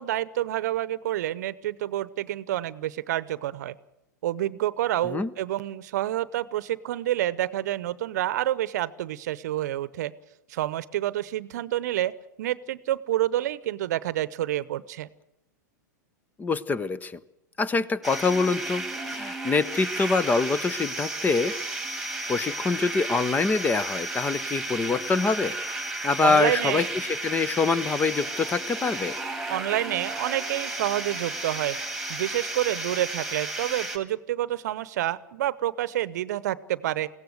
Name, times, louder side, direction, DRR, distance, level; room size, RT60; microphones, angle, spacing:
voice 1, 0.0-3.8 4.2-10.1 10.5-15.1 26.2-26.9 29.5-31.8 32.1-37.1, right 13 dB, 65° right, 18 dB, 0.8 m, -28 dB
voice 2, 16.4-17.2 17.6-21.6 22.3-25.6 26.0-26.8 27.2-29.1, left 4 dB, 15° left, 19 dB, 0.7 m, -25 dB
sound 1, 18.0-34.0, right 2 dB, ahead, 2.3 m, -33 dB
21.5 x 16.5 x 8.0 m, 0.87 s
hypercardioid pair, 105°, 10 cm